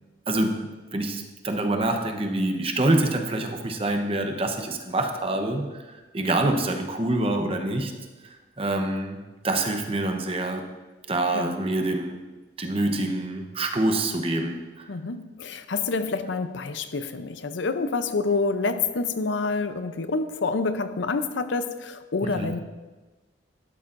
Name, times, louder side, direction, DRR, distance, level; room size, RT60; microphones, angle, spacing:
voice 1, 0.3-0.6 0.9-5.9 6.1-7.9 8.2-10.7 11.1-12.2 12.6-14.9 22.2-22.5, right 2 dB, 30° right, 5 dB, 0.9 m, -26 dB
voice 2, 14.9-22.6, left 4 dB, 75° left, 10 dB, 0.6 m, -27 dB
12.5 x 11.5 x 2.6 m, 1.2 s
head